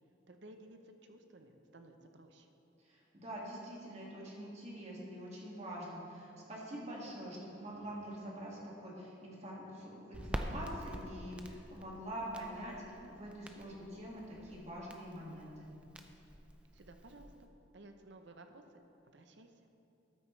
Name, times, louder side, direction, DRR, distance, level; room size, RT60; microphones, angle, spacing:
voice 1, 0.3-2.5 16.7-17.5 17.7-18.6 19.1-19.5, right 2 dB, 60° right, 6 dB, 0.7 m, -56 dB
voice 2, 2.9-15.7, equal, 35° right, -4 dB, 1.9 m, -45 dB
Crackle, 10.1-17.4, equal, 5° right, 0.4 m, -47 dB
13.5 x 9.1 x 3.2 m, 3.0 s
head